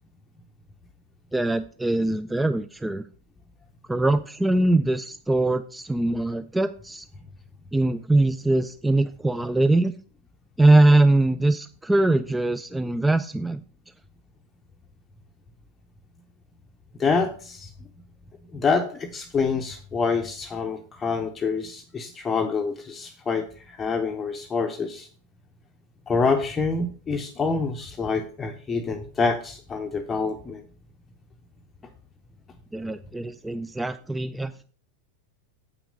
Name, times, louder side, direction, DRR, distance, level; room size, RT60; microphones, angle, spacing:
voice 1, 1.3-3.0 3.9-7.1 7.7-9.9 10.6-13.6 32.7-34.6, right 2 dB, 5° right, 12 dB, 0.3 m, -22 dB
voice 2, 17.0-17.7 18.5-25.1 26.1-30.6, left 4 dB, 15° left, 4 dB, 0.7 m, -26 dB
7.9 x 5.9 x 5.1 m, 0.43 s
figure-of-eight pair, 90°, 0 cm